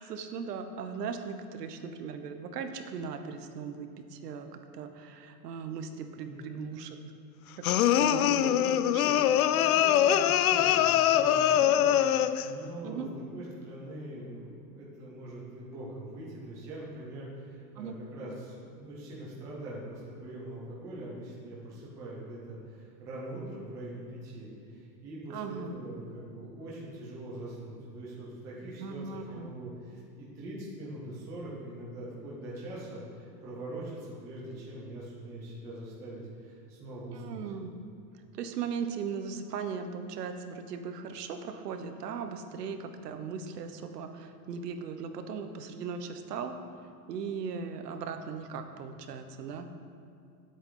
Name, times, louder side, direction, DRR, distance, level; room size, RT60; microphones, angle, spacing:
voice 1, 0.0-7.0 7.6-7.7 7.9-9.0 12.8-13.1 17.7-17.9 25.3-25.8 28.8-29.5 37.1-37.7 38.3-46.6 47.1-49.7, right 6 dB, 70° right, 7 dB, 1.2 m, -38 dB
voice 2, 6.2-6.9 8.0-29.0 29.3-37.4, right 1 dB, 5° right, -6 dB, 0.5 m, -43 dB
sound 1, 7.6-12.5, left 11 dB, 60° left, 0.5 m, -23 dB
18.0 x 8.1 x 3.9 m, 2.5 s
supercardioid pair, 175°, 49 cm